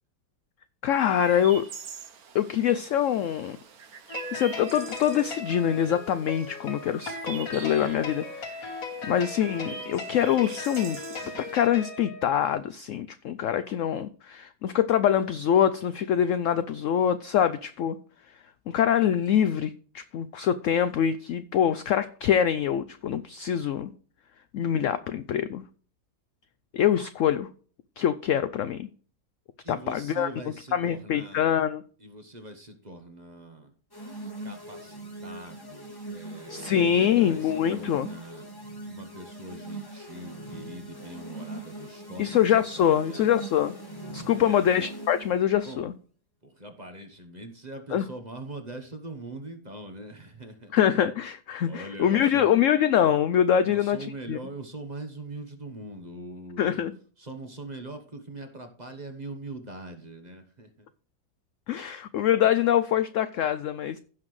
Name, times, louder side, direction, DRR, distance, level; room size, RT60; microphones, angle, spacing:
voice 1, 0.8-1.7 2.3-3.6 4.1-11.0 11.5-18.0 18.7-23.9 24.5-25.6 26.7-27.5 28.0-28.9 29.7-30.3 30.7-31.8 36.5-38.1 42.2-43.7 44.1-45.9 47.9-48.0 50.7-54.0 54.3-54.4 56.6-56.9 61.7-64.0, left 9 dB, 75° left, 0.7 m, -24 dB
Chirp tweet, 1.0-11.7, right 7 dB, 60° right, 1.5 m, -45 dB
sound 1, 4.1-12.5, left 3 dB, 55° left, 1.8 m, -38 dB
voice 2, 29.6-31.5 32.0-33.7 34.4-38.5 38.9-43.4 44.3-44.7 45.6-45.8 46.4-50.8 51.7-52.6 53.6-56.8 57.2-60.9, right 2 dB, 30° right, 1.0 m, -42 dB
sound 2, 33.9-45.5, right 1 dB, 15° left, 1.5 m, -41 dB
16.0 x 5.8 x 3.2 m
omnidirectional pair, 1.8 m